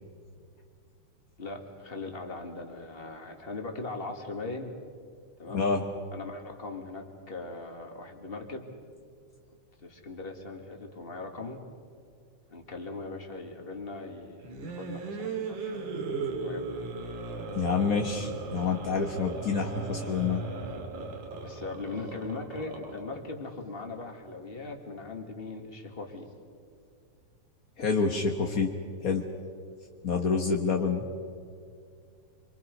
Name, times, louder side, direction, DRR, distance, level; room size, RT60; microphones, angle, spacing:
voice 1, 1.4-4.7 5.4-5.6 6.1-8.7 9.8-11.6 12.5-15.6 16.4-16.6 21.4-26.3, left 3 dB, 20° left, 3 dB, 2.0 m, -39 dB
voice 2, 5.5-5.9 17.5-20.4 27.8-28.7 29.0-29.2 30.0-31.1, left 5 dB, 50° left, 2 dB, 1.0 m, -27 dB
sound 1, 14.4-23.2, right 4 dB, 85° right, 3.7 m, -37 dB
26.0 x 25.5 x 5.4 m, 2.3 s
omnidirectional pair, 3.4 m